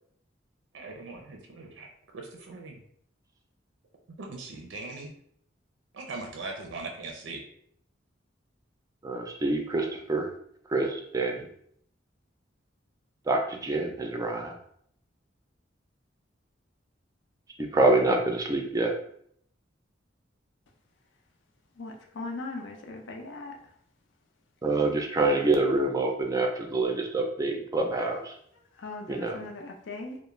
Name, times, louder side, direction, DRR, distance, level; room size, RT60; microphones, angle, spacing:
voice 1, 0.7-1.9 2.1-2.8 4.2-5.1 5.9-7.4, right 3 dB, 85° right, 1 dB, 0.5 m, -40 dB
voice 2, 9.0-10.3 10.7-11.5 13.3-14.6 17.7-18.9 24.6-28.3 29.1-29.4, right 2 dB, 20° right, 2 dB, 0.3 m, -26 dB
voice 3, 21.8-23.5 28.8-30.2, left 3 dB, 80° left, 2 dB, 0.5 m, -39 dB
2.3 x 2.0 x 3.0 m, 0.67 s
head